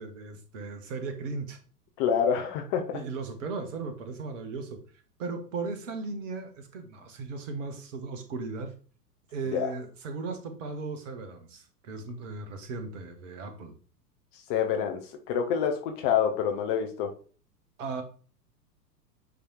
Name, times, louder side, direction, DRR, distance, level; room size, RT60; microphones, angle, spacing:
voice 1, 0.0-1.6 2.9-4.8 5.2-8.7 9.3-13.7 17.8-18.0, right 4 dB, 50° right, 7 dB, 1.8 m, -37 dB
voice 2, 2.0-3.0 9.5-9.7 14.5-17.1, left 8 dB, 30° left, 4 dB, 1.0 m, -27 dB
9.1 x 3.4 x 4.5 m, 0.40 s
figure-of-eight pair, 100°, 48 cm